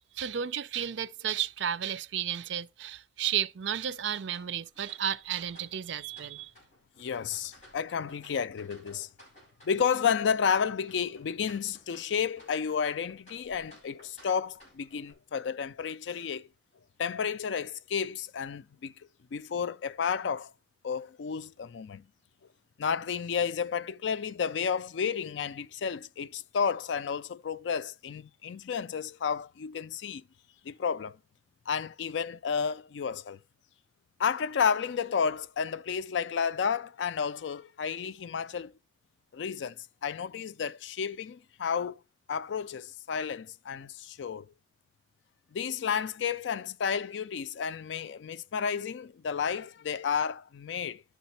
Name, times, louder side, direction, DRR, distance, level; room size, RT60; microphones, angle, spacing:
voice 1, 0.0-6.5, right 9 dB, 75° right, 0.5 m, -33 dB
sound 1, 4.3-15.1, equal, 40° left, 4.9 m, -58 dB
voice 2, 7.0-9.1 9.6-16.5 17.0-18.9 19.3-20.5 20.8-22.0 22.8-30.2 30.6-31.2 31.7-33.4 34.2-38.7 39.3-42.0 42.3-44.5 45.5-51.0, left 6 dB, 75° left, 0.4 m, -31 dB
11.5 x 4.0 x 4.3 m
head